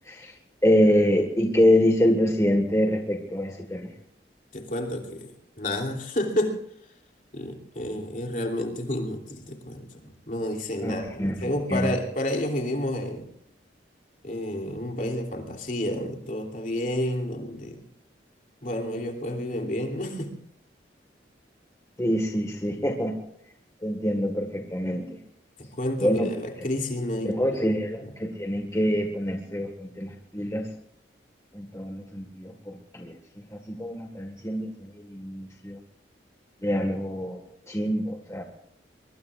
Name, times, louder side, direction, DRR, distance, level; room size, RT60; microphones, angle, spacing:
voice 1, 0.6-3.9 10.8-10.9 11.2-11.9 22.0-23.1 23.8-25.0 26.0-26.3 27.2-30.7 31.5-33.1 33.7-35.8 36.6-37.4 37.7-38.4, equal, 15° left, 2 dB, 1.6 m, -25 dB
voice 2, 4.5-6.6 7.3-13.3 14.2-17.8 18.6-20.4 25.6-27.3 27.7-28.1, left 1 dB, 45° left, 2 dB, 3.0 m, -30 dB
24.0 x 23.5 x 2.5 m, 0.70 s
head